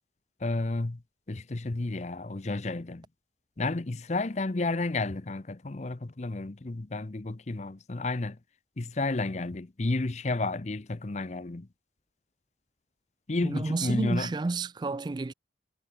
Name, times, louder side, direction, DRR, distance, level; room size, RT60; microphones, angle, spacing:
voice 1, 0.4-1.0 1.3-3.1 3.6-8.4 8.8-11.7 13.3-14.3, left 2 dB, 40° left, 0.7 m, -31 dB
voice 2, 13.4-15.3, right 3 dB, 25° right, 0.3 m, -30 dB
head